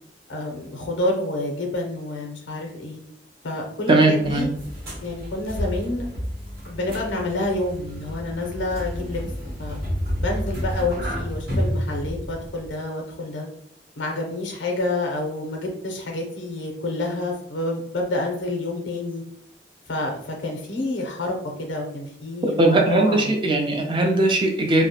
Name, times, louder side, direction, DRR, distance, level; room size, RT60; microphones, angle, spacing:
voice 1, 0.3-3.0 3.4-4.5 5.0-6.1 6.7-9.2 9.6-9.8 10.2-13.5 14.0-19.2 19.9-23.3, left 2 dB, 75° left, 2 dB, 0.6 m, -28 dB
voice 2, 3.9-4.5 22.4-24.9, right 2 dB, 25° right, 3 dB, 0.4 m, -19 dB
sound 1, 4.2-12.7, equal, 55° right, 0.9 m, -30 dB
2.3 x 2.1 x 2.7 m, 0.72 s
head